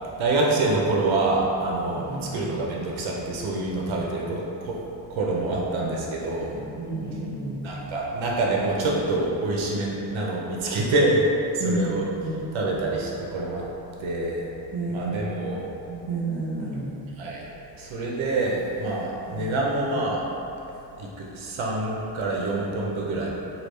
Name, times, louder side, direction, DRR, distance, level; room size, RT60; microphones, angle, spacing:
voice 1, 0.2-2.0 2.3-4.8 5.1-6.6 7.6-11.3 11.5-12.1 12.5-13.7 14.0-14.4 14.9-15.7 17.2-17.5 17.7-20.2 21.0-23.3, right 2 dB, 85° right, -3 dB, 0.6 m, -26 dB
voice 2, 1.8-2.3 6.4-7.6 11.6-12.5 14.7-15.3 15.9-16.9 19.3-19.5, right 2 dB, 60° right, -7 dB, 0.9 m, -31 dB
3.3 x 2.3 x 3.1 m, 2.8 s
wide cardioid pair, 145°, 46 cm